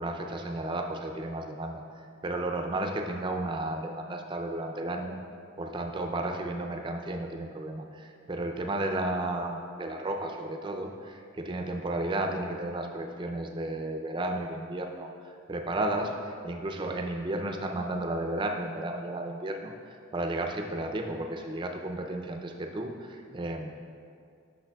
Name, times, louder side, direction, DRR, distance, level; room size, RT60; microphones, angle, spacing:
voice 1, 0.0-1.8 2.2-5.2 5.6-23.7, right 1 dB, 25° right, 3 dB, 0.4 m, -33 dB
8.3 x 6.2 x 2.3 m, 2.4 s
head